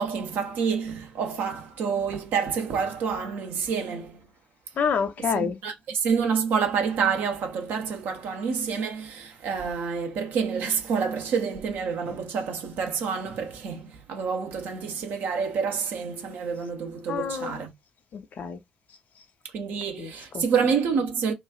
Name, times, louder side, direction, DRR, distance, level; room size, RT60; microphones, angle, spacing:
voice 1, 0.0-4.3 5.3-17.7 19.4-21.3, right 6 dB, 55° right, 0.7 m, -28 dB
voice 2, 4.8-5.6 17.1-17.6 18.1-18.6 20.0-20.4, left 6 dB, 45° left, 0.5 m, -28 dB
3.1 x 2.3 x 2.3 m
figure-of-eight pair, 45°, 4 cm